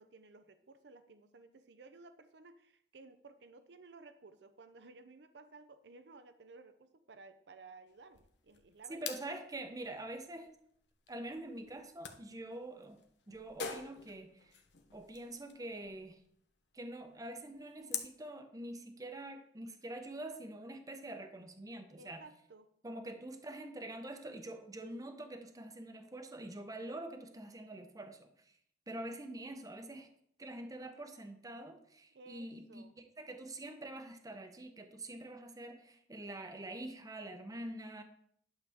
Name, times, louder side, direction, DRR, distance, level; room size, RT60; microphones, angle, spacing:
voice 1, 0.0-9.2 22.0-22.7 32.1-32.9, right 3 dB, 75° right, 10 dB, 0.6 m, -56 dB
sound 1, 7.9-18.2, left 7 dB, 75° left, 1.0 m, -47 dB
voice 2, 8.9-10.5 11.1-13.0 13.3-14.5 14.9-16.2 16.7-22.2 22.8-28.6 28.9-30.1 30.4-32.8 33.2-38.0, right 1 dB, 20° right, 7 dB, 0.8 m, -45 dB
11.0 x 6.7 x 3.5 m, 0.67 s
head